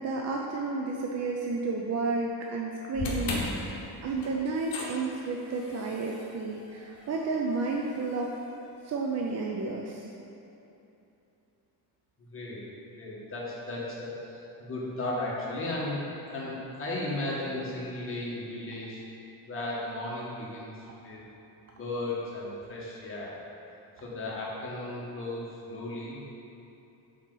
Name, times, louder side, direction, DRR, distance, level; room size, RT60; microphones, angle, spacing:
voice 1, 0.0-8.3 8.8-10.0, right 3 dB, 40° right, -1 dB, 0.4 m, -31 dB
sound 1, 2.9-9.2, left 2 dB, 55° left, 1.0 m, -39 dB
voice 2, 12.2-12.6 12.9-16.0 16.3-19.0 19.5-21.2 21.7-23.3 24.0-26.2, left 2 dB, 30° left, -6 dB, 1.3 m, -35 dB
7.2 x 4.4 x 3.8 m, 2.9 s
cardioid pair, 170°, 41 cm